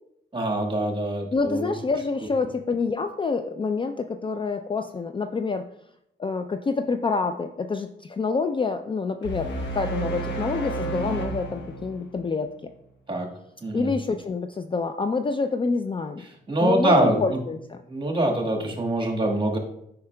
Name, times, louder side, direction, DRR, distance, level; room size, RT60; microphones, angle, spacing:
voice 1, 0.3-1.8 13.1-13.3 13.6-13.9 16.2-17.4 17.8-19.6, right 1 dB, 25° right, 1 dB, 1.5 m, -24 dB
voice 2, 1.3-5.7 6.2-12.7 13.7-16.2 16.6-17.8, left 4 dB, 25° left, 7 dB, 0.4 m, -27 dB
sound 1, 9.2-12.6, right 2 dB, 75° left, 1.0 m, -31 dB
8.4 x 5.6 x 2.2 m, 0.78 s
cardioid pair, 70°, 19 cm